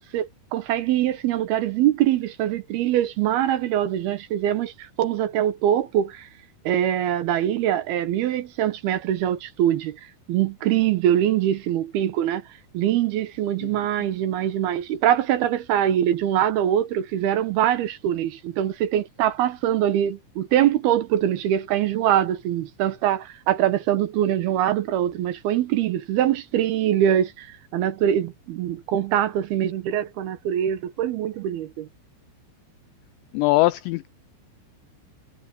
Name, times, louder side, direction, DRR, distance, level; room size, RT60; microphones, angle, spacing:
voice 1, 0.0-6.3 6.7-10.0 10.3-12.4 12.7-27.5 27.7-31.9, right 11 dB, 70° right, 2.6 m, -23 dB
voice 2, 33.3-34.1, left 19 dB, 85° left, 2.6 m, -21 dB
omnidirectional pair, 5.7 m